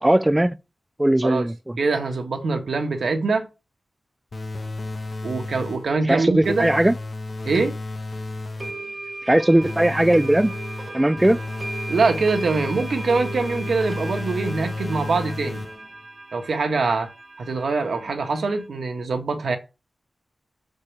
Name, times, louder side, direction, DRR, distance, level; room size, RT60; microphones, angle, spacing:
voice 1, 0.0-0.6 1.0-1.8 6.1-6.9 9.2-10.5 10.9-11.4, right 1 dB, 10° right, 0.4 m, -18 dB
voice 2, 1.8-3.5 5.2-6.7 7.4-7.8 11.9-15.7 16.3-17.1 17.4-19.6, right 4 dB, 80° right, 1.7 m, -23 dB
sound 1, 4.3-6.0 6.4-8.9 9.6-16.0, left 2 dB, 45° left, 1.2 m, -32 dB
sound 2, 7.5-7.6 8.6-18.7, right 2 dB, 40° right, 1.4 m, -37 dB
6.7 x 5.4 x 6.8 m
wide cardioid pair, 115°, 0 cm